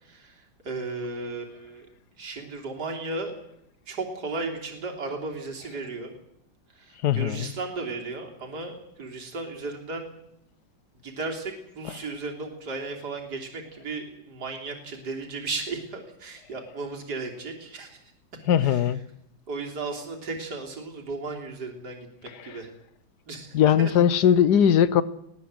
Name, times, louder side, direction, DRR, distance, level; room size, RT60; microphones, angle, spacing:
voice 1, 0.0-1.9 2.2-3.3 3.9-6.1 6.7-10.1 11.0-18.0 18.6-18.8 19.5-22.7 23.3-23.9, right 3 dB, 55° right, 1 dB, 3.8 m, -35 dB
voice 2, 7.0-7.5 18.5-19.0 22.4-22.6 23.5-25.0, left 9 dB, 60° left, 17 dB, 1.4 m, -20 dB
21.0 x 17.5 x 7.8 m, 0.77 s
omnidirectional pair, 2.1 m